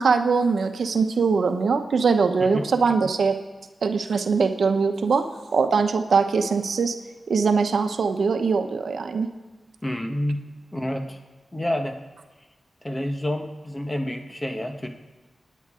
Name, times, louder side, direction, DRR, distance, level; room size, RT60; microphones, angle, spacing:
voice 1, 0.0-3.4 3.8-5.2 5.5-6.9 7.3-9.3, right 5 dB, 85° right, 7 dB, 0.9 m, -22 dB
voice 2, 9.8-10.4 10.7-11.2 11.5-12.0 12.8-14.9, left 1 dB, 15° left, 5 dB, 1.3 m, -28 dB
27.0 x 9.4 x 3.7 m, 1.2 s
wide cardioid pair, 90°, 0 cm